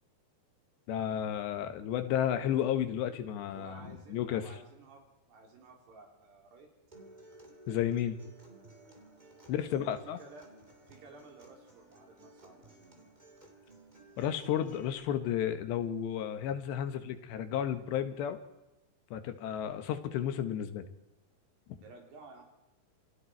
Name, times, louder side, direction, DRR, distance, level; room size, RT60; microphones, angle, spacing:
voice 1, 0.9-3.8 4.1-4.5 7.7-8.2 9.5-10.2 14.2-18.4 19.1-20.9 21.7-21.8, left 10 dB, 80° left, 9 dB, 3.5 m, -32 dB
voice 2, 3.5-6.7 9.4-10.5 10.9-13.0 21.8-22.4, right 3 dB, 70° right, 1 dB, 5.7 m, -54 dB
Acoustic guitar, 6.9-14.9, right 2 dB, 15° right, 2.0 m, -56 dB
28.0 x 20.0 x 4.6 m, 1.0 s
omnidirectional pair, 5.0 m